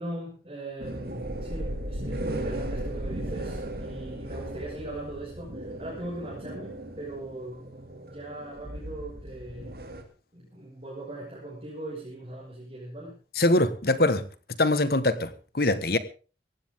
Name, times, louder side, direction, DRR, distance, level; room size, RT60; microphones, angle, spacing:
voice 1, 0.0-7.6 8.0-9.8 10.3-13.2, right 1 dB, 30° right, -5 dB, 6.0 m, -40 dB
sound 1, 0.8-10.0, right 1 dB, 55° right, 2.6 m, -36 dB
voice 2, 13.4-14.2 14.6-16.0, left 2 dB, 55° left, 14 dB, 1.3 m, -23 dB
18.0 x 15.5 x 3.7 m, 0.36 s
head